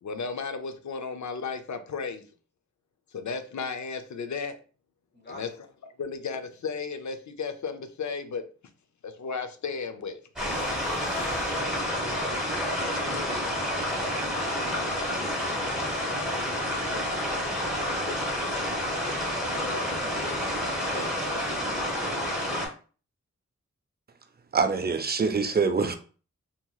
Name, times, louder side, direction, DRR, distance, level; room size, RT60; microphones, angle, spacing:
voice 1, 0.0-2.2 3.1-4.6 5.3-5.6 6.0-8.4 9.0-10.2, left 5 dB, 70° left, 0.5 m, -34 dB
voice 2, 5.1-5.5 12.8-13.6 13.9-16.0 19.4-20.4 20.9-21.5, left 1 dB, 35° left, 1.0 m, -43 dB
sound 1, 10.4-13.8, left 1 dB, 90° left, 1.0 m, -46 dB
sound 2, 10.4-22.7, left 1 dB, 5° right, 1.5 m, -29 dB
voice 3, 24.5-26.0, right 4 dB, 35° right, 0.5 m, -24 dB
2.8 x 2.8 x 2.3 m
cardioid pair, 50°, 30 cm